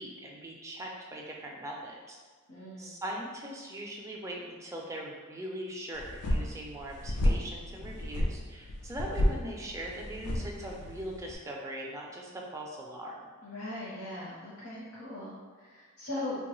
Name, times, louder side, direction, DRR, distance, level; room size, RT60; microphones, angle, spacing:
voice 1, 0.0-2.2 2.8-13.2, right 1 dB, 15° right, -1 dB, 0.3 m, -40 dB
voice 2, 2.5-2.9 13.4-16.4, left 1 dB, 60° left, -9 dB, 0.8 m, -39 dB
sound 1, 6.0-11.4, left 1 dB, 90° left, 0.4 m, -31 dB
3.3 x 2.2 x 3.0 m, 1.4 s
head